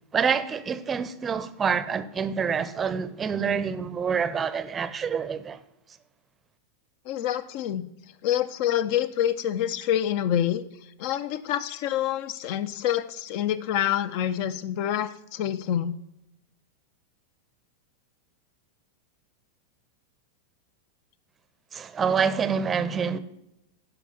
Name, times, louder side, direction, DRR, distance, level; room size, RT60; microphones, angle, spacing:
voice 1, 0.1-5.6 21.7-23.2, right 6 dB, 20° right, 0.7 m, -27 dB
voice 2, 7.1-7.9 8.2-10.6 11.0-15.9, left 11 dB, 45° left, 0.7 m, -27 dB
12.0 x 5.1 x 5.7 m
figure-of-eight pair, 90°, 0 cm